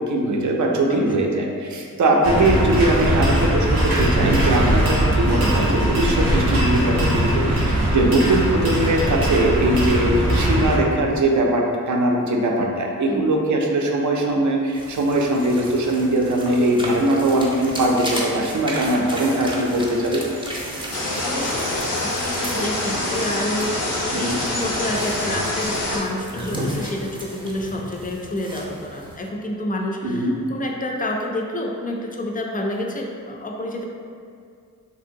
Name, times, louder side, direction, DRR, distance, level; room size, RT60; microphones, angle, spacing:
voice 1, 0.0-20.2 24.1-24.4 30.0-30.3, right 1 dB, 55° right, 0 dB, 0.5 m, -21 dB
voice 2, 0.9-1.4 8.0-8.1 13.1-13.4 21.2-21.7 22.0-33.8, left 1 dB, 25° left, 1 dB, 0.4 m, -29 dB
sound 1, 2.2-10.8, right 1 dB, 90° right, 0.7 m, -20 dB
sound 2, 14.7-29.2, equal, 15° right, 0.6 m, -34 dB
sound 3, 20.9-26.0, left 1 dB, 85° left, 0.8 m, -25 dB
2.9 x 2.7 x 2.6 m, 2.3 s
cardioid pair, 45°, 35 cm